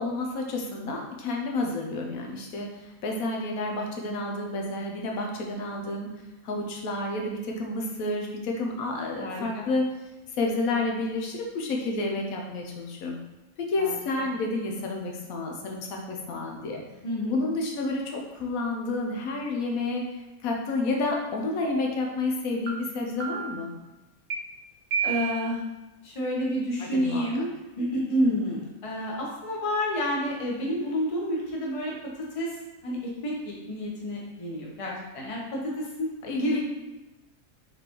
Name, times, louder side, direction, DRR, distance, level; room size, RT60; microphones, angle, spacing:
voice 1, 0.0-6.1 6.4-9.9 10.4-13.2 13.6-16.8 17.2-20.1 20.4-23.7 26.8-27.5 36.2-36.6, left 2 dB, 75° left, 1 dB, 1.1 m, -30 dB
voice 2, 9.2-9.6 13.8-14.0 17.0-17.4 25.0-25.6 26.0-32.6 32.8-36.1 36.4-36.6, equal, 30° left, -3 dB, 0.7 m, -29 dB
sound 1, 21.1-21.2 21.6-22.0 22.7-22.8 23.2-23.7 24.3-24.4 24.9-25.5, right 7 dB, 70° right, 1.1 m, -31 dB
4.2 x 3.3 x 2.9 m, 1.1 s
omnidirectional pair, 1.5 m